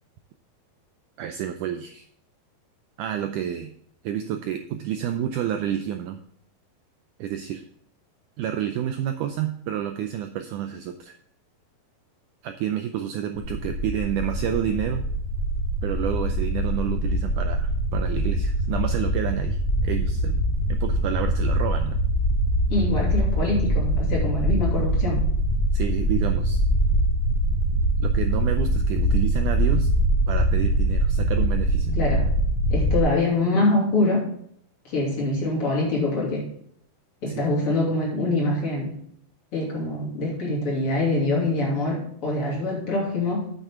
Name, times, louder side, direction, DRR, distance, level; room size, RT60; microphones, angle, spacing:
voice 1, 1.2-2.1 3.0-3.7 4.0-6.2 7.2-7.6 8.4-11.2 12.4-15.1 15.8-20.4 20.7-22.0 25.7-26.6 28.0-29.9 30.3-32.0 37.3-37.4, right 10 dB, 85° right, 7 dB, 1.8 m, -29 dB
sound 1, 13.4-33.0, right 1 dB, 65° left, 2.1 m, -23 dB
voice 2, 22.7-25.2 31.9-32.2 32.7-34.3 34.8-36.5 37.2-39.0 39.5-43.5, left 2 dB, 40° left, -3 dB, 3.4 m, -24 dB
8.9 x 8.5 x 3.7 m, 0.66 s
omnidirectional pair, 4.3 m